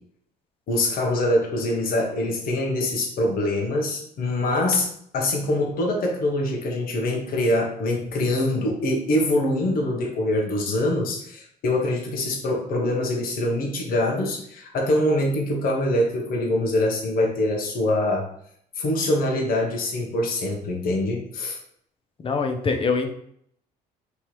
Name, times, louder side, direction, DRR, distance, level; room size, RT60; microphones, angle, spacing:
voice 1, 0.7-4.9 5.1-18.3 18.8-21.6, left 1 dB, 60° left, 0 dB, 1.2 m, -24 dB
voice 2, 22.2-23.1, left 4 dB, 30° left, 6 dB, 0.7 m, -23 dB
3.5 x 3.1 x 4.5 m, 0.67 s
cardioid pair, 110°, 17 cm